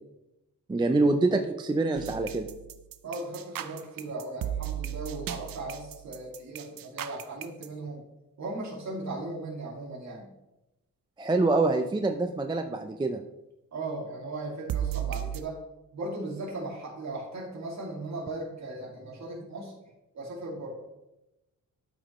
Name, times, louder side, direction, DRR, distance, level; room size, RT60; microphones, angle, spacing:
voice 1, 0.7-2.5 11.2-13.2, right 2 dB, 15° right, 5 dB, 0.3 m, -25 dB
sound 1, 2.0-7.7 14.7-15.4, right 11 dB, 80° right, 0.5 m, -35 dB
voice 2, 3.0-8.0 8.4-10.3 13.7-15.6 15.9-19.7 20.1-20.7, right 2 dB, 55° right, -3 dB, 2.4 m, -37 dB
12.5 x 5.1 x 3.0 m, 0.94 s
wide cardioid pair, 165°, 34 cm